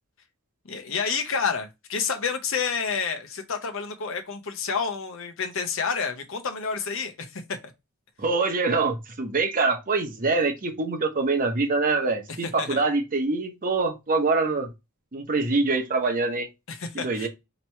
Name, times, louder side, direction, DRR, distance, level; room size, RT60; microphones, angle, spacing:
voice 1, 0.6-7.6 12.6-12.8 16.7-17.3, left 5 dB, 65° left, 0.8 m, -29 dB
voice 2, 8.2-14.7 15.1-16.5 16.9-17.3, right 3 dB, 40° right, 0.8 m, -24 dB
2.9 x 2.9 x 4.4 m
head